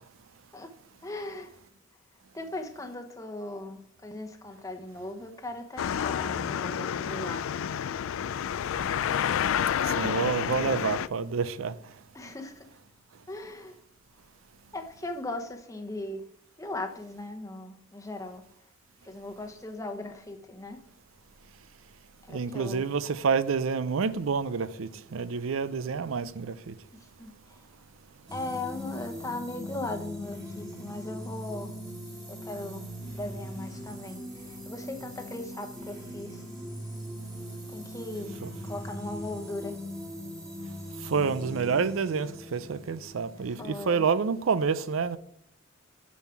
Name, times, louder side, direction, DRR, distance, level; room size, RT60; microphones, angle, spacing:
voice 1, 1.0-1.5 2.3-7.8 12.1-12.7 13.3-13.8 14.7-16.2 16.6-18.4 19.0-20.8 22.3-22.9 26.9-27.6 28.3-31.8 32.3-32.8 33.1-36.4 37.7-38.3 38.6-39.8 43.4-44.1, left 2 dB, 15° left, 0.9 m, -38 dB
sound 1, 5.8-11.1, left 8 dB, 90° left, 0.3 m, -29 dB
voice 2, 9.8-11.7 22.3-26.7 38.4-38.5 41.0-45.2, right 5 dB, 85° right, 0.5 m, -28 dB
sound 2, 28.3-44.0, equal, 20° right, 1.9 m, -41 dB
7.1 x 6.4 x 5.7 m
head